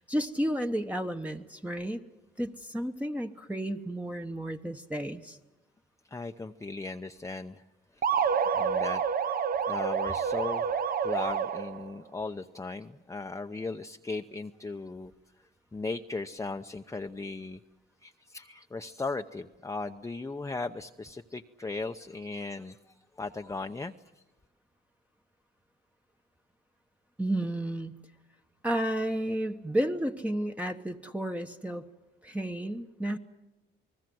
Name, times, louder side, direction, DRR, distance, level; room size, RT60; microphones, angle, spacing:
voice 1, 0.0-2.0 2.4-5.4 27.2-28.0 28.6-31.8 32.2-33.2, right 1 dB, 5° right, 4 dB, 1.1 m, -32 dB
voice 2, 6.1-7.6 7.9-8.0 8.5-9.0 9.7-15.1 15.7-17.6 18.0-23.9, left 3 dB, 15° left, 5 dB, 0.8 m, -37 dB
sound 1, 8.0-11.9, right 7 dB, 50° right, 0.8 m, -28 dB
28.5 x 20.0 x 7.8 m, 1.1 s
cardioid pair, 90°, 20 cm